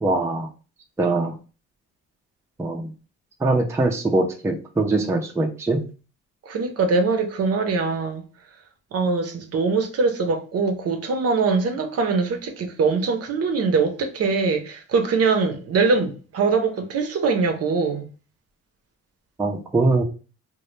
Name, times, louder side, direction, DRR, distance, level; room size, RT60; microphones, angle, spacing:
voice 1, 0.0-0.5 1.0-1.3 2.6-2.9 3.4-5.9 19.4-20.0, right 2 dB, 10° right, 0.4 m, -22 dB
voice 2, 6.5-8.2 8.9-18.1, right 4 dB, 55° right, 0.6 m, -22 dB
2.1 x 2.0 x 3.0 m
cardioid pair, 90°, 30 cm